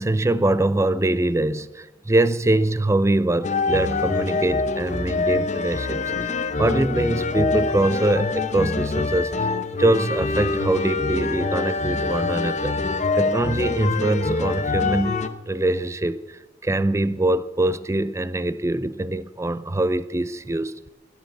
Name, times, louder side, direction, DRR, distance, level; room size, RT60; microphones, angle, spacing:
voice 1, 0.0-9.5 9.8-12.8 13.1-15.2 15.5-20.9, right 2 dB, 15° right, 0.5 m, -23 dB
sound 1, 3.4-15.3, left 3 dB, 40° left, 0.8 m, -25 dB
16.5 x 10.5 x 6.6 m
head